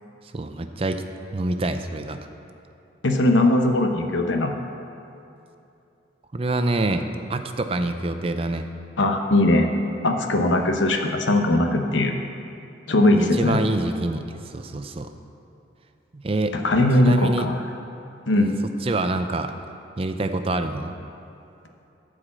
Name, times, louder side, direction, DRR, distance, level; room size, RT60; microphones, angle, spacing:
voice 1, 0.3-1.0 1.3-2.2 6.3-8.7 13.1-15.1 16.1-16.6 17.0-17.5 18.8-19.5 20.0-20.9, right 2 dB, 30° right, 8 dB, 0.4 m, -26 dB
voice 2, 3.0-4.5 9.0-9.7 10.0-12.2 12.9-13.6 16.5-17.6 18.3-18.6, left 1 dB, 80° left, 4 dB, 0.9 m, -20 dB
12.5 x 5.0 x 7.5 m, 2.7 s
head